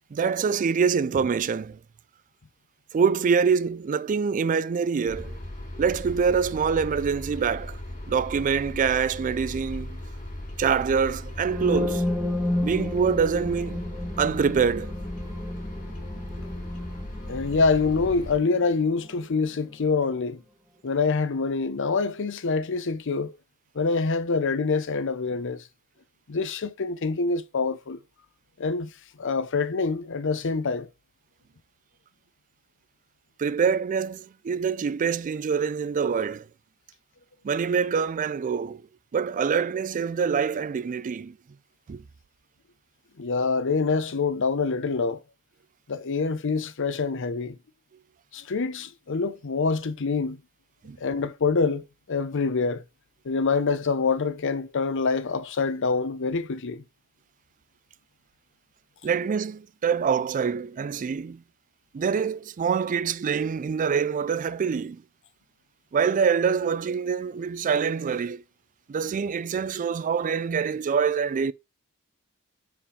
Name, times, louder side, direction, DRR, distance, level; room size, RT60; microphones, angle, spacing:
voice 1, 0.1-1.8 2.9-5.4 5.8-7.8 8.1-10.0 10.6-12.1 12.6-13.8 14.2-14.9 33.4-36.5 37.4-38.8 39.1-41.4 41.9-42.0 50.8-51.0 59.0-61.4 61.9-65.0 65.9-68.4 68.9-71.5, right 6 dB, 35° right, 0.3 m, -25 dB
sound 1, 5.1-18.4, left 1 dB, 40° left, 2.6 m, -37 dB
sound 2, 11.4-19.2, left 1 dB, ahead, 1.2 m, -32 dB
voice 2, 17.3-20.4 20.8-23.3 23.7-25.6 26.3-28.0 28.6-28.9 29.2-30.9 43.2-45.2 45.9-47.6 48.3-50.4 51.0-52.8 53.2-56.8, left 4 dB, 60° left, 0.6 m, -26 dB
5.2 x 5.0 x 4.8 m
head